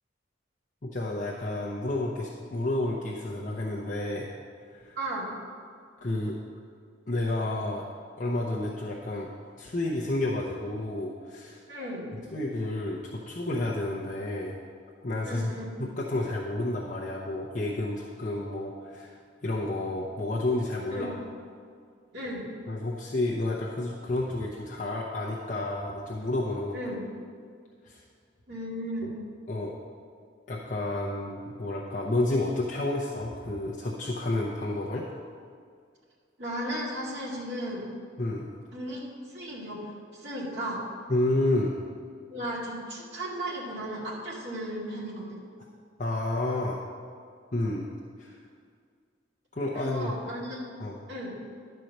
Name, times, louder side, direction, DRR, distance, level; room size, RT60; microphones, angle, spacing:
voice 1, 0.8-4.3 4.7-5.0 6.0-6.4 7.1-7.9 8.2-9.3 9.6-11.6 12.3-14.6 15.0-15.5 15.8-19.1 19.4-21.1 22.7-26.9 27.8-28.0 29.0-29.1 29.5-29.7 30.5-35.1 38.2-38.5 41.1-41.8 46.0-46.8 47.5-47.9 48.2-48.4 49.5-50.1 50.8-51.0, left 2 dB, 45° left, -4 dB, 0.8 m, -30 dB
voice 2, 5.0-5.3 11.7-12.1 15.2-15.8 20.9-21.2 22.1-22.5 26.7-27.0 28.5-29.1 36.4-37.8 38.7-39.0 39.3-40.8 42.3-45.4 49.7-50.7 51.1-51.3, right 1 dB, 60° right, -5 dB, 2.3 m, -35 dB
11.0 x 4.6 x 6.5 m, 2.1 s
head